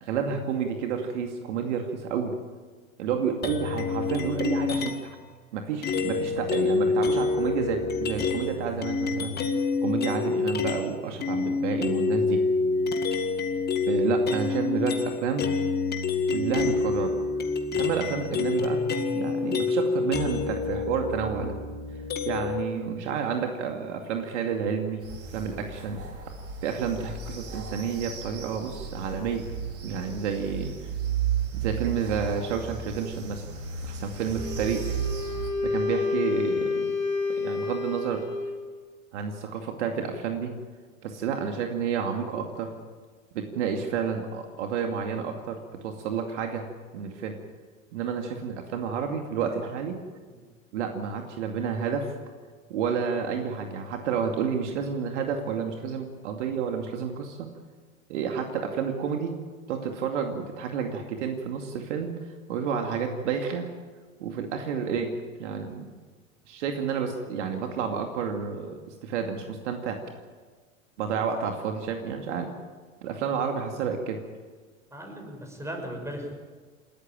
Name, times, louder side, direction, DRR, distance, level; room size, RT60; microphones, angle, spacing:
voice 1, 0.0-2.4 3.0-5.2 5.5-9.3 9.8-12.4 13.9-15.4 16.3-17.1 17.8-18.8 19.1-21.5 22.3-25.0 25.3-26.0 26.6-29.5 29.8-30.7 31.5-33.4 33.8-35.0 35.6-36.9 37.3-38.2 39.1-40.5 41.0-42.7 43.3-45.6 45.8-46.6 46.9-47.4 47.9-50.0 50.7-52.1 52.7-57.4 58.1-59.3 59.7-62.1 62.5-63.7 64.2-65.1 65.4-65.9 66.5-70.0 71.0-72.5 73.0-74.2, right 6 dB, 55° right, 4 dB, 2.5 m, -30 dB
sound 1, 3.4-5.2 5.8-10.9 11.2-22.6, left 4 dB, 25° left, 2.1 m, -27 dB
sound 2, 25.0-35.5, right 7 dB, 35° right, 4.5 m, -34 dB
Wind instrument woodwind instrument, 34.3-38.7, left 4 dB, 70° left, 4.7 m, -29 dB
voice 2, 74.9-76.3, equal, 5° right, 3 dB, 6.3 m, -37 dB
29.0 x 13.5 x 9.0 m, 1.5 s
figure-of-eight pair, 85°, 41 cm